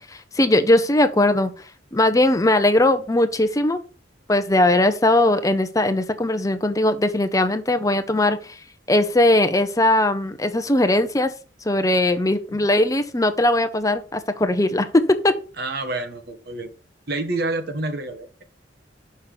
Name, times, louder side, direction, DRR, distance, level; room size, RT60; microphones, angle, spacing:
voice 1, 0.1-1.5 1.9-3.8 4.3-8.6 8.9-11.3 11.6-15.3, left 1 dB, 20° left, 9 dB, 0.7 m, -19 dB
voice 2, 15.6-16.7 17.1-18.4, right 2 dB, 55° right, 7 dB, 1.4 m, -28 dB
6.6 x 5.6 x 6.7 m, 0.36 s
head